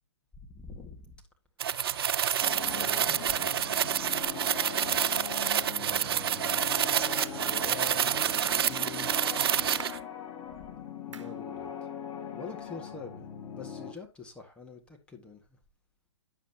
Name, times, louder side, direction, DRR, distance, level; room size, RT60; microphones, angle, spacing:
voice 1, 0.4-1.1 2.6-3.7 5.4-9.1 11.1-11.7 12.3-13.3 13.5-15.4, left 4 dB, 5° left, 1.8 m, -45 dB
sound 1, 1.6-10.0, right 10 dB, 55° right, 0.6 m, -28 dB
sound 2, 2.4-13.9, left 7 dB, 30° left, 4.1 m, -41 dB
sound 3, 5.9-6.1 7.2-7.5 8.5-8.7 9.8-10.1 11.1-11.4, right 5 dB, 75° right, 1.3 m, -45 dB
10.0 x 7.6 x 2.9 m
hypercardioid pair, 130°, 15 cm